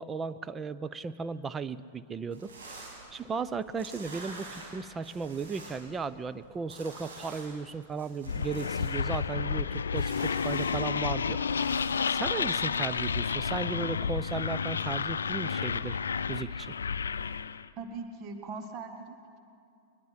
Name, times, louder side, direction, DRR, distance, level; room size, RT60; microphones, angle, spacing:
voice 1, 0.0-11.8 12.1-16.0 16.3-16.7, right 5 dB, 20° right, 14 dB, 0.6 m, -36 dB
sound 1, 2.3-13.1, right 3 dB, 70° right, 6.4 m, -49 dB
sound 2, 8.3-17.7, left 6 dB, 80° left, 0.5 m, -31 dB
voice 2, 17.8-19.4, right 4 dB, 40° right, 6 dB, 1.7 m, -41 dB
21.5 x 21.0 x 5.9 m, 2.6 s
hypercardioid pair, 100°, 0 cm